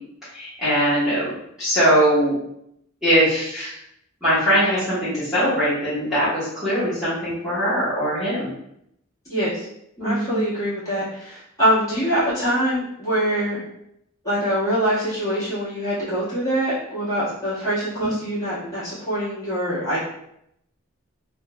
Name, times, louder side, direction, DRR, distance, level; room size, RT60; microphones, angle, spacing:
voice 1, 0.3-1.3 1.6-2.3 3.0-3.7 4.2-8.5 10.0-10.4 18.0-18.1 18.6-18.7, equal, ahead, -15 dB, 1.2 m, -21 dB
voice 2, 9.3-9.6 10.0-13.6 14.2-20.0, equal, 15° left, -12 dB, 1.5 m, -24 dB
3.6 x 2.5 x 2.2 m, 0.76 s
head